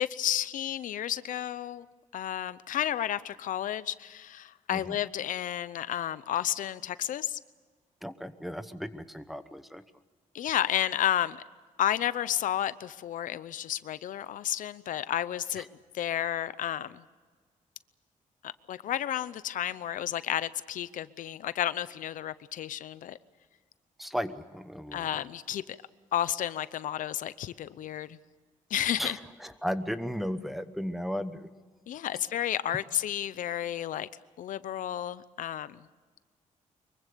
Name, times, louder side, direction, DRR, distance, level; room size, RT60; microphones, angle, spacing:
voice 1, 0.0-1.9 2.1-7.4 10.3-11.4 11.8-15.7 15.9-17.0 18.4-23.2 24.9-25.8 26.1-28.2 28.7-29.2 31.9-34.1 34.4-35.9, left 11 dB, 80° left, 16 dB, 0.7 m, -32 dB
voice 2, 8.0-9.8 15.6-15.7 24.0-25.1 29.0-31.5, equal, ahead, 9 dB, 1.0 m, -35 dB
24.0 x 23.0 x 6.9 m, 1.5 s
wide cardioid pair, 155°, 13 cm